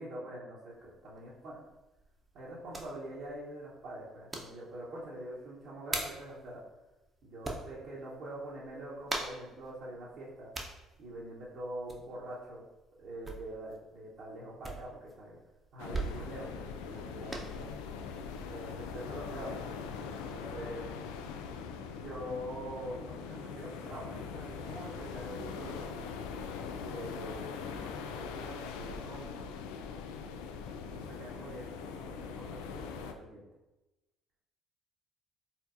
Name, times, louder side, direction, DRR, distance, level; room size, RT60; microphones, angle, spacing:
voice 1, 0.0-1.6 2.3-6.6 7.2-10.5 11.0-12.7 13.0-15.3 15.7-17.7 18.5-19.7 20.1-20.9 22.0-25.9 26.8-29.6 30.9-33.4, right 1 dB, 55° right, -8 dB, 1.0 m, -44 dB
sound 1, 0.7-17.5, right 2 dB, 20° right, 0.8 m, -44 dB
sound 2, 15.8-33.1, left 5 dB, 65° left, 0.3 m, -42 dB
4.4 x 4.4 x 2.6 m, 1.0 s
figure-of-eight pair, 50°, 0 cm